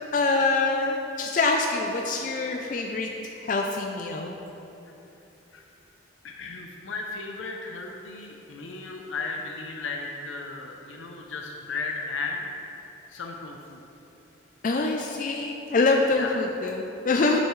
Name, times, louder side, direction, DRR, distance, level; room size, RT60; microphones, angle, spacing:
voice 1, 0.1-4.4 14.6-17.4, left 3 dB, 40° left, 1 dB, 0.4 m, -25 dB
voice 2, 6.2-12.5 13.1-13.8 16.1-16.3, left 4 dB, 85° left, 1 dB, 0.6 m, -35 dB
8.5 x 7.0 x 3.2 m, 3.0 s
head